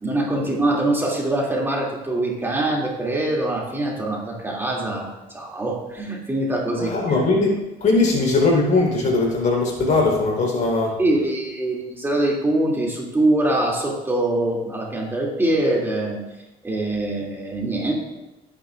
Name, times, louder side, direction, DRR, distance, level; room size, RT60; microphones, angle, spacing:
voice 1, 0.0-6.9 11.0-16.2 16.6-17.9, right 1 dB, 15° right, -3 dB, 2.8 m, -23 dB
voice 2, 6.8-11.0, left 3 dB, 50° left, 0 dB, 4.3 m, -20 dB
18.0 x 9.8 x 2.6 m, 0.98 s
cardioid pair, 110°, 17 cm